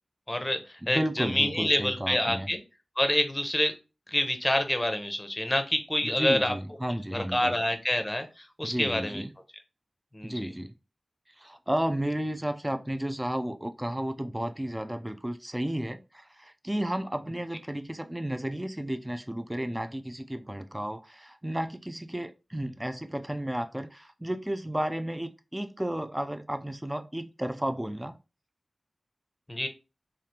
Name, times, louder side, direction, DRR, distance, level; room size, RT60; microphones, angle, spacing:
voice 1, 0.3-2.6 3.0-3.7 4.1-6.5 7.1-9.2 10.1-10.5 29.5-29.7, left 1 dB, 15° left, 7 dB, 0.7 m, -27 dB
voice 2, 0.8-2.5 6.0-7.6 8.6-9.3 10.2-10.7 11.3-28.2, right 1 dB, 15° right, 8 dB, 0.4 m, -33 dB
3.2 x 2.4 x 2.8 m, 0.29 s
cardioid pair, 45°, 0 cm